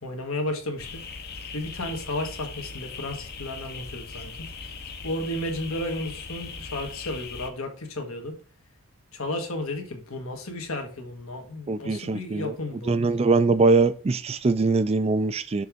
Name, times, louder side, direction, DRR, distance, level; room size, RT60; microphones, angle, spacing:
voice 1, 0.0-1.0 1.5-4.3 5.0-8.4 9.1-13.0, left 1 dB, 75° left, 1.5 m, -33 dB
sound 1, 0.8-7.5, left 5 dB, 45° left, 0.8 m, -39 dB
voice 2, 11.7-12.5 12.9-15.7, right 3 dB, 30° right, 0.3 m, -22 dB
6.7 x 3.5 x 5.1 m
head